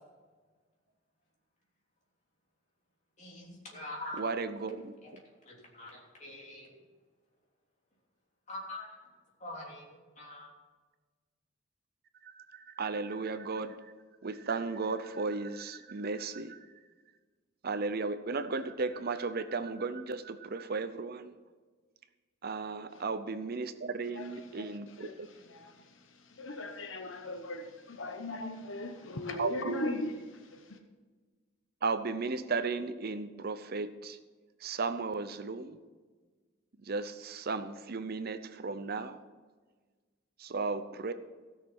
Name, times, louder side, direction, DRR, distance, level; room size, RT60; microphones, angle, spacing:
voice 1, 3.2-4.3 5.0-5.2 5.4-6.7 8.5-8.9 9.4-10.5, left 1 dB, 40° left, 3.2 m, -44 dB
voice 2, 4.2-4.9 12.8-13.7 14.2-16.5 17.6-21.3 22.4-25.1 29.4-29.8 31.8-34.1 34.6-35.7 36.9-38.4 38.6-39.1 40.5-41.1, right 4 dB, 50° right, 0.7 m, -35 dB
voice 3, 24.0-30.8, left 2 dB, 75° left, 1.0 m, -40 dB
16.0 x 6.6 x 6.1 m
head